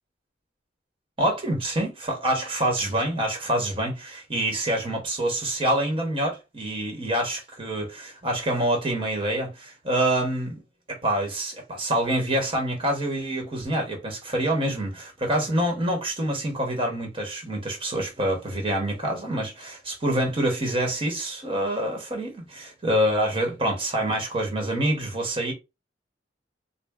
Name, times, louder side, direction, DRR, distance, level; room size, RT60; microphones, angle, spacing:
voice 1, 1.2-10.6 10.9-25.5, right 1 dB, 30° right, 1.1 m, -26 dB
4.0 x 2.1 x 3.6 m
head